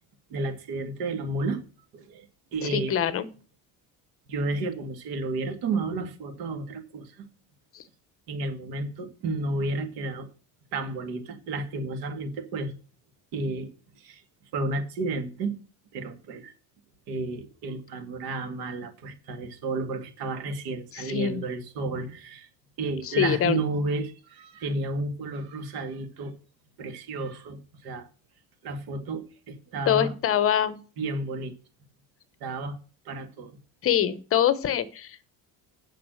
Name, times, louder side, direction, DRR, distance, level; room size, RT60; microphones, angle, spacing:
voice 1, 0.3-1.6 1.9-2.3 2.5-2.9 4.3-7.3 8.3-10.3 10.7-12.7 13.3-13.7 14.0-14.2 14.5-15.6 15.9-16.5 17.1-22.5 22.8-26.3 26.8-28.1 28.6-30.1 31.0-31.5 32.4-32.8 33.1-33.5, right 2 dB, 75° right, 2.4 m, -32 dB
voice 2, 2.6-3.3 7.7-7.8 20.9-21.4 23.0-23.6 29.9-30.8 33.8-35.3, left 9 dB, 40° left, 0.9 m, -24 dB
9.4 x 6.5 x 6.4 m
cardioid pair, 175°, 36 cm